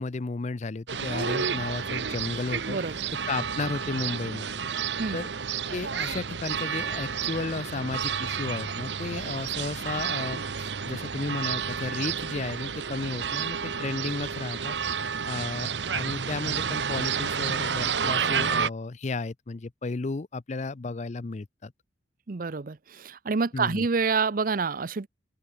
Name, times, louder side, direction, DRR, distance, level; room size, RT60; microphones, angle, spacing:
voice 1, 0.0-2.8 3.3-4.6 5.1-5.3 5.7-14.8 15.3-21.7 23.5-23.9, left 3 dB, 40° left, 0.5 m, -33 dB
sound 1, 0.9-18.7, right 6 dB, 85° right, 1.0 m, -30 dB
voice 2, 2.7-3.1 5.0-5.2 22.3-25.1, right 4 dB, 50° right, 0.6 m, -28 dB
open air
head